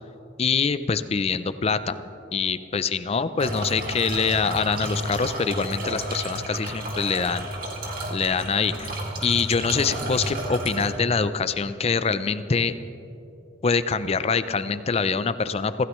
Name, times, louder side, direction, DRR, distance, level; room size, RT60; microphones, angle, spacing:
voice 1, 0.4-2.0 2.3-7.5 8.1-12.7 13.6-15.9, left 5 dB, 35° left, 13 dB, 0.5 m, -24 dB
sound 1, 3.4-10.9, right 1 dB, 50° right, 2.4 m, -32 dB
25.0 x 16.0 x 3.1 m, 2.9 s
head